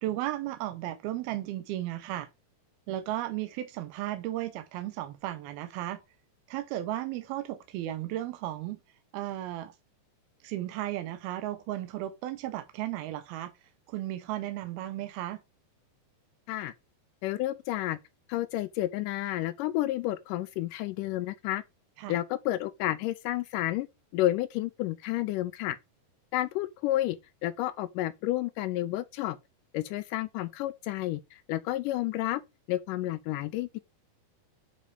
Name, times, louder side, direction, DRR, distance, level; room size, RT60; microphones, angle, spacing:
voice 1, 0.0-2.3 2.9-6.0 6.5-8.8 9.1-9.7 10.4-13.5 13.9-15.4 22.0-22.2, right 14 dB, 85° right, 2.8 m, -34 dB
voice 2, 17.2-18.0 18.3-21.6 22.1-23.9 24.1-25.8 26.3-27.2 27.4-29.4 29.7-32.4 32.7-33.8, left 15 dB, 80° left, 1.9 m, -30 dB
10.5 x 4.2 x 5.0 m
omnidirectional pair, 4.3 m